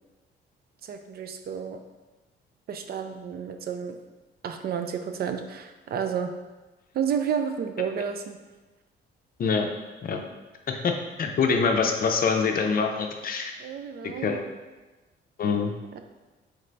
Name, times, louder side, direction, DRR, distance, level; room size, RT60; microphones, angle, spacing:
voice 1, 0.8-1.8 2.7-4.0 4.4-6.3 6.9-8.4 13.6-14.4 15.9-16.0, right 7 dB, 55° right, 6 dB, 0.4 m, -31 dB
voice 2, 11.2-13.5 14.2-14.4 15.4-15.7, left 5 dB, 45° left, 4 dB, 0.5 m, -24 dB
3.8 x 3.2 x 3.3 m, 1.2 s
cardioid pair, 90°, 20 cm